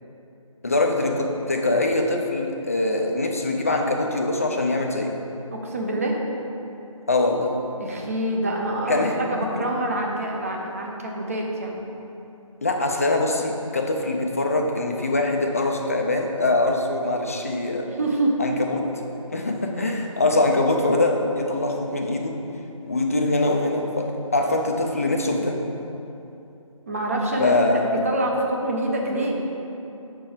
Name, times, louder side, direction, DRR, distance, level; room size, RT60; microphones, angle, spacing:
voice 1, 0.6-5.2 7.1-7.6 8.9-9.2 9.6-9.7 12.6-17.9 18.4-18.9 19.3-22.4 22.8-25.6 27.4-27.9, left 2 dB, 25° left, 2 dB, 0.4 m, -23 dB
voice 2, 5.5-6.2 7.8-11.8 17.9-18.4 26.9-27.6 27.9-29.4, right 1 dB, 25° right, -1 dB, 0.6 m, -26 dB
6.8 x 4.5 x 4.8 m, 2.9 s
figure-of-eight pair, 160°, 18 cm